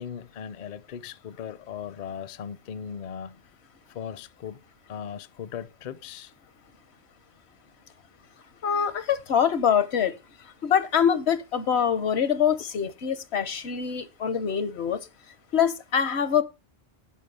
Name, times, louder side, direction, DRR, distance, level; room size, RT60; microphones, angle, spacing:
voice 1, 0.0-3.4 3.9-4.6 4.9-6.3, left 8 dB, 55° left, 0.6 m, -38 dB
voice 2, 8.6-10.1 10.6-15.0 15.5-16.4, left 8 dB, 85° left, 1.2 m, -24 dB
10.0 x 4.9 x 5.3 m
omnidirectional pair, 1.1 m